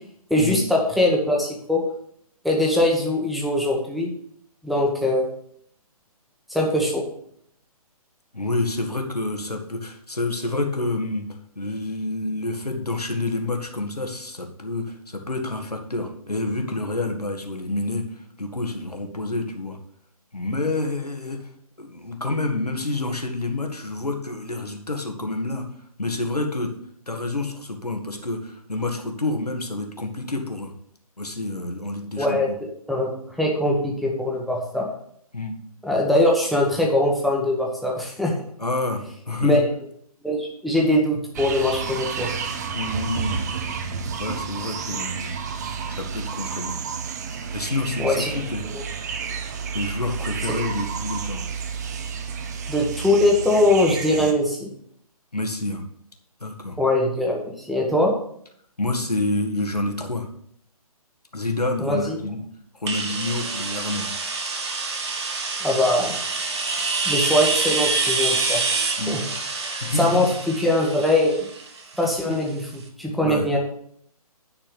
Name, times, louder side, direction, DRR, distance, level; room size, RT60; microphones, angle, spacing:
voice 1, 0.3-1.8 2.4-4.1 4.6-5.2 6.5-7.0 32.2-32.5 32.9-33.1 33.4-34.9 35.8-38.3 39.4-39.6 40.2-42.3 48.0-48.3 48.7-48.8 52.7-54.7 56.8-58.1 61.8-62.2 65.6-66.1 67.0-68.6 69.1-69.2 70.0-71.4 72.0-72.6 73.0-73.6, left 1 dB, ahead, -1 dB, 1.2 m, -21 dB
voice 2, 8.3-11.3 11.6-19.8 20.3-21.5 21.8-25.7 26.0-26.7 27.1-30.7 31.2-32.6 35.3-35.6 38.6-39.6 42.7-43.4 44.2-45.4 45.9-46.8 47.5-48.7 49.7-51.5 54.2-54.3 55.3-55.8 56.4-56.8 58.8-60.3 61.3-62.5 62.8-64.1 69.0-69.2 69.8-70.2 72.3-72.4 73.2-73.5, left 2 dB, 85° left, 3 dB, 1.7 m, -28 dB
sound 1, 41.3-54.3, right 6 dB, 30° right, 0.8 m, -31 dB
sound 2, 62.9-72.5, right 3 dB, 45° right, 1.5 m, -26 dB
9.9 x 4.4 x 6.8 m, 0.66 s
figure-of-eight pair, 140°, 19 cm